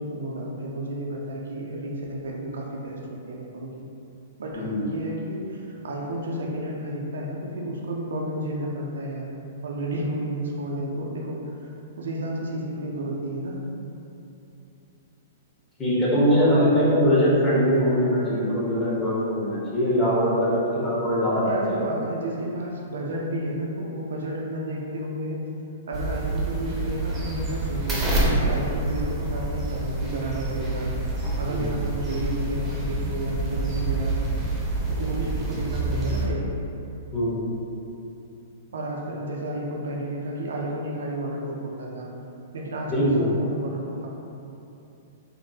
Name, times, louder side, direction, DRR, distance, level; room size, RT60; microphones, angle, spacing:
voice 1, 0.0-3.8 4.4-9.3 9.6-11.7 12.0-13.6 21.4-25.4 25.9-30.9 31.4-34.2 35.0-36.5 38.7-42.1 42.5-44.1, right 1 dB, 75° right, -2 dB, 0.4 m, -31 dB
voice 2, 4.5-4.9 15.8-22.0 31.5-31.7 37.1-37.4 42.9-43.3, equal, 20° left, -9 dB, 1.0 m, -22 dB
sound 1, 25.9-36.3, right 2 dB, 20° right, 0.7 m, -27 dB
3.4 x 2.0 x 2.7 m, 2.8 s
hypercardioid pair, 120°, 0 cm